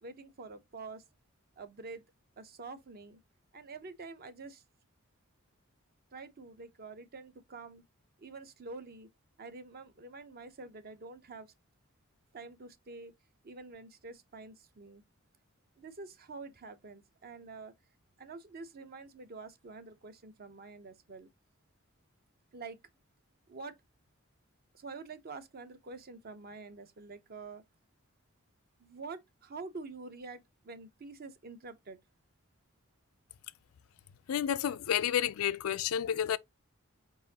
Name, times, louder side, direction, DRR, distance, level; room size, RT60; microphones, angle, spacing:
voice 1, 0.0-1.0 1.6-2.0 2.4-3.2 3.5-4.6 6.1-7.8 8.2-9.1 9.4-11.5 12.3-13.1 13.4-15.0 15.8-17.7 18.2-21.3 22.5-22.8 23.5-23.7 24.7-27.6 28.8-32.0, right 3 dB, 45° right, 0.7 m, -47 dB
voice 2, 34.3-36.4, left 9 dB, 85° left, 0.4 m, -30 dB
4.7 x 3.9 x 2.7 m
head